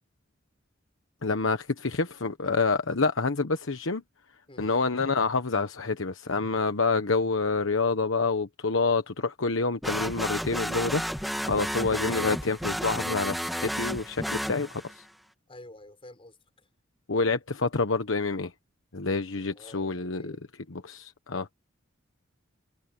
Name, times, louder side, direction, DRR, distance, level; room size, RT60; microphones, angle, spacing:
voice 1, 1.2-4.0 4.6-15.0 17.1-18.5 18.9-20.4 20.7-21.5, left 4 dB, 90° left, 1.2 m, -27 dB
sound 1, 9.8-15.0, equal, ahead, 1.8 m, -32 dB
voice 2, 15.5-16.4 19.4-20.4, left 1 dB, 30° left, 6.2 m, -48 dB
head